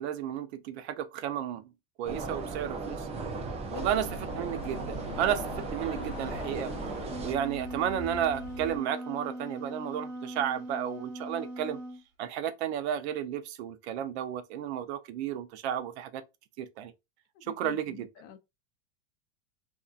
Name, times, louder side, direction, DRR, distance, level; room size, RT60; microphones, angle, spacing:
voice 1, 0.0-1.7 2.0-3.1 3.7-4.1 4.4-6.7 7.2-11.8 12.2-16.2 16.6-16.9 17.5-18.1, right 10 dB, 65° right, 0.6 m, -33 dB
sound 1, 2.0-7.3, right 3 dB, 20° right, 0.4 m, -37 dB
voice 2, 3.7-4.0 17.4-18.4, left 10 dB, 45° left, 0.6 m, -45 dB
sound 2, 3.8-8.8, left 3 dB, 65° left, 0.9 m, -43 dB
Wind instrument woodwind instrument, 6.8-12.0, right 1 dB, 35° right, 1.2 m, -40 dB
2.7 x 2.2 x 2.4 m
supercardioid pair, 125°, 35 cm